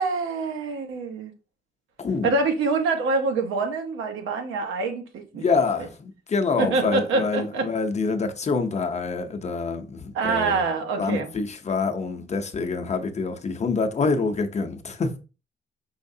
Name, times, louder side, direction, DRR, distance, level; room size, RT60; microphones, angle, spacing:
voice 1, 0.0-1.3 2.2-5.4 6.6-7.7 10.1-11.3, right 3 dB, 80° right, 1.0 m, -25 dB
voice 2, 2.0-2.3 5.4-10.6 11.0-15.2, left 4 dB, 35° left, 0.7 m, -26 dB
5.6 x 3.2 x 2.7 m
cardioid pair, 90°, 20 cm